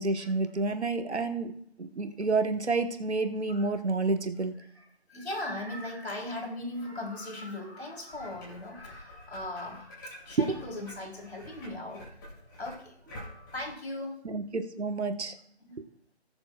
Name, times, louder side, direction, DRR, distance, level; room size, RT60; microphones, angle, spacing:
voice 1, 0.0-1.5 1.8-4.5 14.2-15.3, right 3 dB, 80° right, 7 dB, 1.4 m, -29 dB
voice 2, 5.1-12.1 12.6-12.9 13.5-14.2 15.6-15.8, left 1 dB, 70° left, 0 dB, 3.8 m, -38 dB
sound 1, 8.1-13.7, left 1 dB, 20° left, 2.9 m, -48 dB
19.0 x 7.0 x 2.4 m, 0.67 s
figure-of-eight pair, 170°, 33 cm